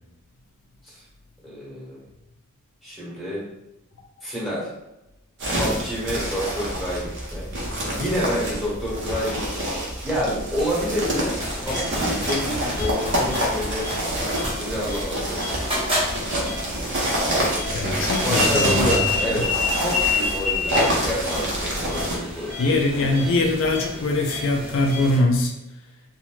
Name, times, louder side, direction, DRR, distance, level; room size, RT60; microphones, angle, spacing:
voice 1, 1.4-2.0 2.8-3.4 4.2-4.7 5.6-7.4 7.8-9.6 10.0-11.3 11.6-13.8 14.6-15.4 17.8-19.4 19.8-22.6, equal, ahead, -8 dB, 1.0 m, -28 dB
sound 1, 5.4-22.2, equal, 55° right, 0.7 m, -27 dB
sound 2, 11.4-25.2, left 2 dB, 25° right, 0.8 m, -29 dB
voice 2, 17.7-19.0 19.3-19.4 22.6-25.5, left 2 dB, 60° left, 2 dB, 0.4 m, -22 dB
2.6 x 2.1 x 3.1 m, 0.93 s
head